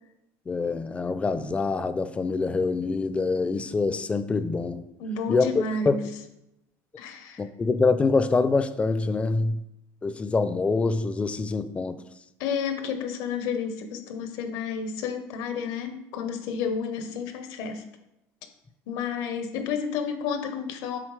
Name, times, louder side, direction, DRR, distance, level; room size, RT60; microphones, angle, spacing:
voice 1, 0.5-4.8 5.3-6.0 7.4-9.6 10.0-12.0, left 4 dB, 15° left, 0.4 m, -25 dB
voice 2, 5.0-6.0 7.0-7.4 12.4-17.8 18.9-21.0, left 6 dB, 75° left, 0.9 m, -31 dB
7.5 x 4.1 x 3.2 m
cardioid pair, 125°, 7 cm